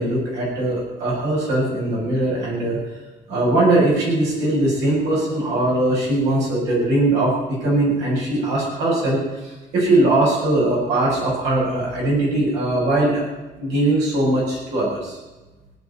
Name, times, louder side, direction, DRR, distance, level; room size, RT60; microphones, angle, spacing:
voice 1, 0.0-2.8 3.3-13.2 13.6-15.2, right 2 dB, 90° right, -4 dB, 7.6 m, -20 dB
18.0 x 7.9 x 9.1 m, 1.1 s
cardioid pair, 110°, 17 cm